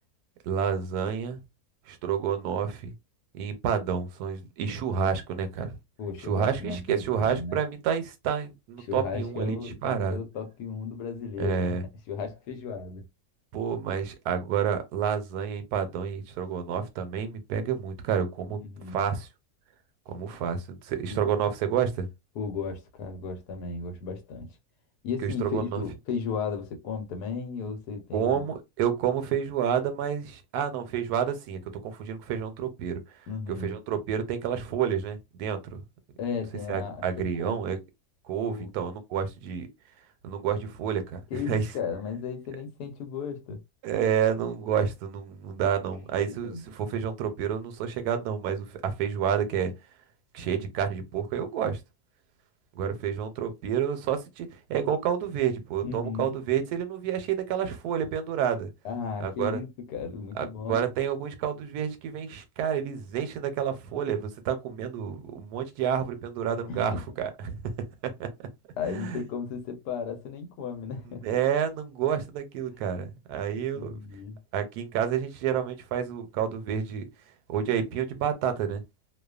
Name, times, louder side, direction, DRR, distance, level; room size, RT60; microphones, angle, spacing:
voice 1, 0.4-1.4 1.9-2.9 3.3-5.8 6.2-10.2 11.4-11.8 13.5-18.6 18.9-19.3 20.1-22.1 25.2-25.8 28.1-33.0 33.6-35.8 36.7-37.8 38.3-39.7 40.2-41.7 43.8-49.7 50.3-51.8 52.8-58.7 59.2-59.6 60.3-67.6 68.2-68.3 68.8-69.2 71.2-74.0 74.5-77.1 77.5-78.8, right 8 dB, 80° right, 1.1 m, -29 dB
voice 2, 6.0-7.6 8.8-11.7 12.1-13.0 18.6-19.0 21.1-21.3 22.3-24.5 25.0-28.4 33.3-33.7 36.2-37.0 37.4-37.7 38.5-38.7 41.3-43.6 46.4-46.6 55.8-56.3 58.8-60.9 66.7-67.0 68.8-71.4 73.5-74.4, left 5 dB, 85° left, 1.2 m, -35 dB
2.7 x 2.2 x 2.3 m
omnidirectional pair, 1.6 m